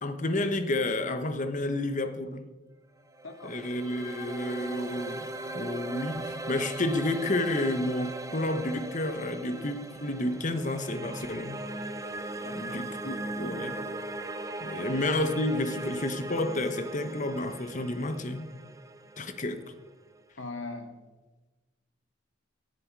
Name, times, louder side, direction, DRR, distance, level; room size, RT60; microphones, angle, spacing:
voice 1, 0.0-2.5 3.4-11.6 12.6-13.8 14.6-18.5 19.2-19.6, left 1 dB, 40° left, 9 dB, 1.2 m, -30 dB
sound 1, 3.0-20.1, right 2 dB, 20° right, 0.9 m, -39 dB
voice 2, 3.2-3.6 12.4-13.4 13.7-14.0 14.7-15.0 20.4-21.0, left 3 dB, 80° left, 5 dB, 2.2 m, -42 dB
17.5 x 11.0 x 4.8 m, 1.2 s
head